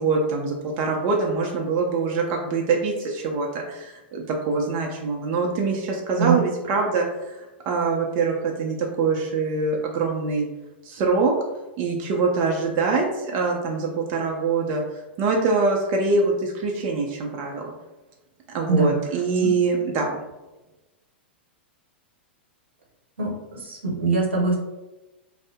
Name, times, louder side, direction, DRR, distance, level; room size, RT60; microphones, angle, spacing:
voice 1, 0.0-10.5 10.8-11.3 11.8-14.8 15.2-17.7 18.5-20.1, right 4 dB, 40° right, 0 dB, 0.5 m, -24 dB
voice 2, 23.6-24.6, right 4 dB, 85° right, -1 dB, 0.9 m, -22 dB
2.6 x 2.0 x 3.6 m, 1.1 s
hypercardioid pair, 105°, 6 cm